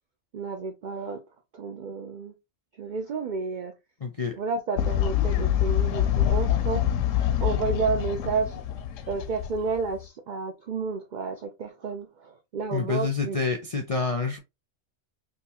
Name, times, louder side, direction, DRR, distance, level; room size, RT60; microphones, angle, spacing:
voice 1, 0.3-1.2 1.5-2.4 2.8-3.7 4.3-6.8 7.4-8.6 9.1-13.4, right 4 dB, 70° right, 0.4 m, -31 dB
voice 2, 4.0-4.4 12.7-14.4, left 4 dB, 55° left, 0.4 m, -28 dB
Fowl, 4.8-10.0, left 11 dB, 80° left, 0.9 m, -25 dB
3.6 x 2.7 x 2.8 m
omnidirectional pair, 1.3 m